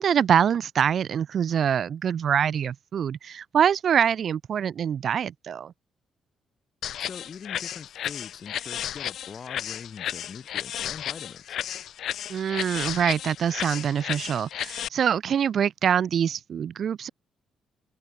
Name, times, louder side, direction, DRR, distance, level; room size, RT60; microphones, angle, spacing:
voice 1, 0.0-5.7 12.3-17.1, right 8 dB, 60° right, 0.5 m, -24 dB
sound 1, 6.8-14.9, left 10 dB, 70° left, 0.6 m, -33 dB
voice 2, 7.0-11.6, left 6 dB, 45° left, 3.6 m, -42 dB
cardioid pair, 90°, 0 cm